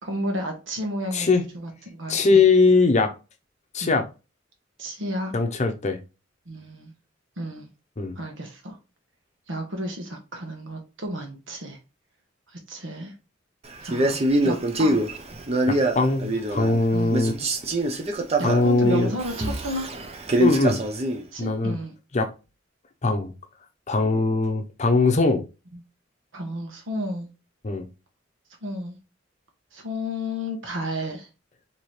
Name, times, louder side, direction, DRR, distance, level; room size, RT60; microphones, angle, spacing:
voice 1, 0.0-1.3 1.5-2.4 3.8-4.0 4.8-5.3 6.5-6.9 7.4-7.7 8.2-8.8 9.5-11.8 12.5-13.1 13.8-14.2 14.4-15.1 16.9-17.2 18.4-19.9 21.3-21.9 26.3-27.3 28.6-29.0 29.7-31.3, equal, 80° right, 1.1 m, -32 dB
voice 2, 1.1-1.4 2.1-3.1 3.7-4.1 5.3-6.0 8.0-8.2 15.7-17.3 18.4-19.1 20.4-20.8 21.4-21.8 22.1-22.3 23.0-23.3 23.9-25.4 27.6-27.9, left 3 dB, 40° left, 0.7 m, -21 dB
Male speech man speaking, 13.8-16.8 17.1-21.2, right 1 dB, 35° right, 0.6 m, -24 dB
4.3 x 2.9 x 3.2 m
head